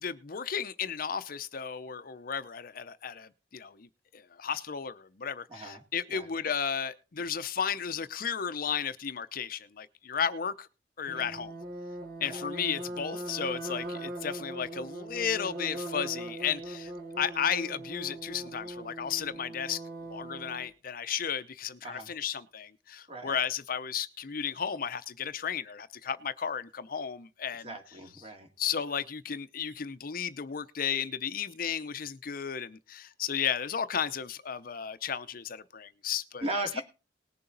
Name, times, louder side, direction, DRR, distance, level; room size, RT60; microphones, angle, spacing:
voice 1, 0.0-3.9 4.1-10.7 11.0-11.5 12.2-16.9 17.2-19.8 20.1-27.8 28.6-36.5, left 7 dB, 50° left, 0.6 m, -34 dB
voice 2, 5.5-5.8 6.1-6.3 11.1-11.3 12.2-12.5 21.8-22.1 23.1-23.4 27.6-28.5 36.4-36.8, right 2 dB, 35° right, 2.3 m, -38 dB
sound 1, 11.1-20.7, right 1 dB, 55° right, 1.5 m, -40 dB
19.5 x 6.9 x 3.9 m
head